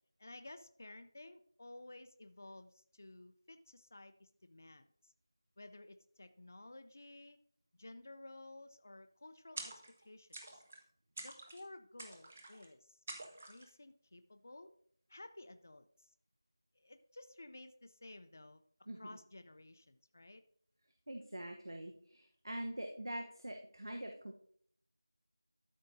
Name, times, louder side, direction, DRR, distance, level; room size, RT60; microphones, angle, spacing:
voice 1, 0.2-5.1 5.6-7.4 7.8-9.7 10.0-10.6 11.2-13.0 13.5-14.7 15.1-16.1 16.7-18.6 18.9-20.4, left 2 dB, 35° left, 10 dB, 0.5 m, -54 dB
sound 1, 9.6-10.0 10.3-10.8 11.2-11.6 12.0-12.7 13.1-13.7, right 2 dB, 15° right, 0.5 m, -48 dB
voice 2, 21.1-24.4, right 1 dB, 80° right, 4 dB, 1.1 m, -44 dB
12.5 x 6.3 x 2.7 m, 0.62 s
figure-of-eight pair, 175°, 2 cm